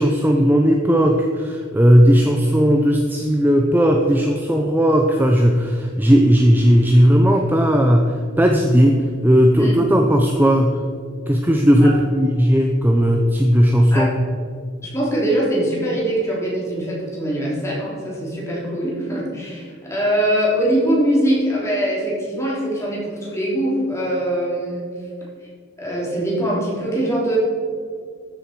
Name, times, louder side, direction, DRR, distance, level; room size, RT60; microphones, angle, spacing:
voice 1, 0.0-10.8 11.3-14.1, equal, 10° right, 2 dB, 0.6 m, -16 dB
voice 2, 14.8-24.9 25.8-27.4, right 1 dB, 15° left, -5 dB, 3.2 m, -22 dB
13.5 x 7.1 x 4.6 m, 2.1 s
head